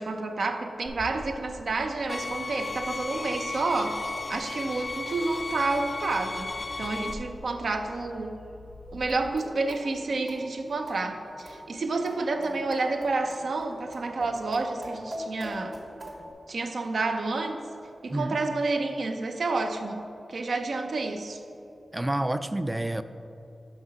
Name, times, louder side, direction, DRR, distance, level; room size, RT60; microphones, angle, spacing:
voice 1, 0.0-4.0 4.3-8.4 8.9-15.8 16.5-17.6 18.0-21.4, right 3 dB, 75° right, 5 dB, 0.6 m, -29 dB
Bird vocalization bird call bird song, 0.8-9.3, left 3 dB, 90° left, 0.9 m, -47 dB
sound 1, 2.1-7.1, left 3 dB, 50° left, 0.4 m, -35 dB
sound 2, 8.9-16.3, equal, 55° right, 1.5 m, -42 dB
voice 2, 21.9-23.0, right 1 dB, 20° right, 11 dB, 0.3 m, -28 dB
5.9 x 5.5 x 5.3 m, 2.7 s
cardioid pair, 65°, 0 cm